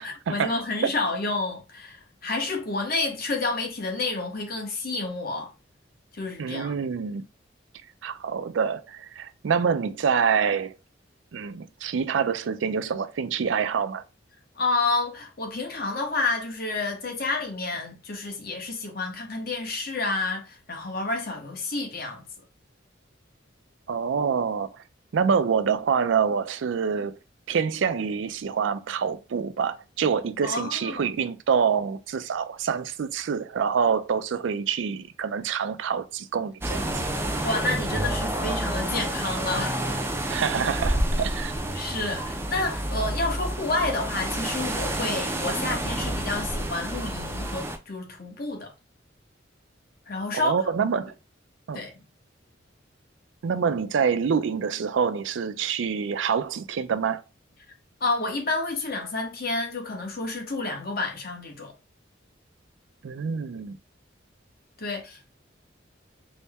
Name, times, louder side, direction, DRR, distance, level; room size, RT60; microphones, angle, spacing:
voice 1, 0.0-5.5 6.1-6.7 14.6-22.2 30.4-31.1 37.4-40.3 41.7-48.7 50.1-50.5 51.7-51.9 58.0-61.7 64.8-65.3, left 3 dB, 50° left, 1.0 m, -29 dB
voice 2, 6.4-7.2 8.0-10.7 11.3-14.0 23.9-24.7 25.1-27.2 27.5-37.1 40.3-41.6 50.3-51.1 51.7-51.8 53.4-57.2 63.0-63.7, right 6 dB, 75° right, 0.4 m, -26 dB
sound 1, 36.6-47.8, right 1 dB, 15° right, 0.4 m, -29 dB
4.1 x 2.1 x 3.4 m
head